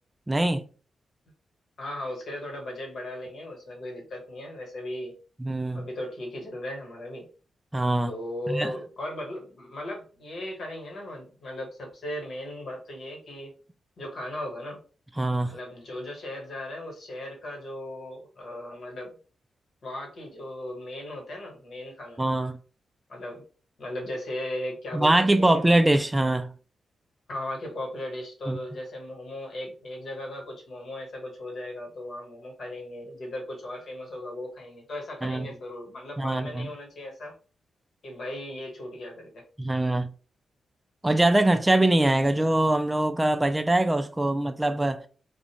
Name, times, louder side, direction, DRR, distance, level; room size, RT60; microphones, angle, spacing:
voice 1, 0.3-0.6 5.4-5.8 7.7-8.1 8.5-8.7 15.2-15.5 22.2-22.6 24.9-26.5 28.5-28.6 35.2-35.5 36.2-36.7 39.6-40.1 41.0-45.0, right 1 dB, 15° right, 0.3 m, -23 dB
voice 2, 1.8-5.1 5.7-7.3 8.1-13.5 14.0-14.8 15.4-19.1 19.8-22.2 23.1-23.4 23.8-25.6 27.3-37.3 38.0-39.4, left 1 dB, 65° left, 1.2 m, -37 dB
2.4 x 2.1 x 2.9 m
supercardioid pair, 50°, 0 cm